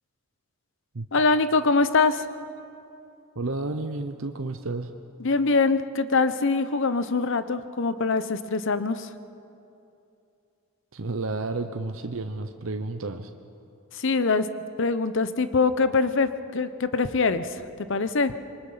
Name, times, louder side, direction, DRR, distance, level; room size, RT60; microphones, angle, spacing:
voice 1, 1.1-2.3 5.2-9.1 14.0-14.5 14.8-17.6 17.9-18.3, left 4 dB, 65° left, 12 dB, 0.9 m, -23 dB
voice 2, 3.4-4.9 10.9-13.3, right 3 dB, 75° right, 7 dB, 0.9 m, -31 dB
26.0 x 23.5 x 5.7 m, 2.7 s
head